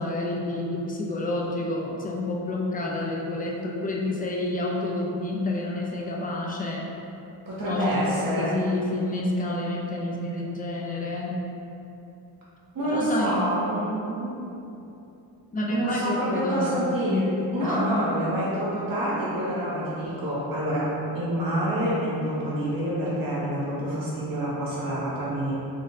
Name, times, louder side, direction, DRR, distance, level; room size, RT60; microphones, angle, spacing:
voice 1, 0.0-6.9 7.6-11.4 12.8-13.4 15.5-17.2 17.6-17.8, left 2 dB, 20° left, -2 dB, 0.5 m, -29 dB
voice 2, 7.5-8.6 12.7-14.3 15.7-17.2 17.5-25.5, right 1 dB, 50° right, -8 dB, 1.5 m, -27 dB
4.2 x 3.6 x 2.6 m, 2.8 s
cardioid pair, 120°, 43 cm